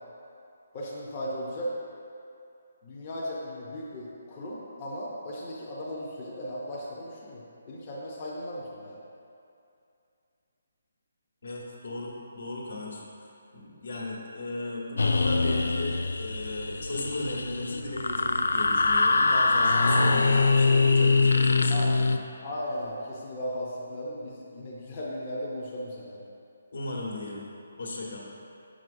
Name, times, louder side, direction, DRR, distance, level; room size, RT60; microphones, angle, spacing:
voice 1, 0.7-1.7 2.8-9.0 21.7-22.0 22.4-26.2, equal, 25° left, -6 dB, 0.6 m, -36 dB
voice 2, 11.4-13.0 13.5-22.1 26.7-27.5 27.7-28.2, left 2 dB, 75° left, -3 dB, 1.3 m, -35 dB
sound 1, 15.0-22.2, left 3 dB, 90° left, 0.3 m, -23 dB
6.7 x 6.1 x 2.6 m, 2.6 s
hypercardioid pair, 175°, 0 cm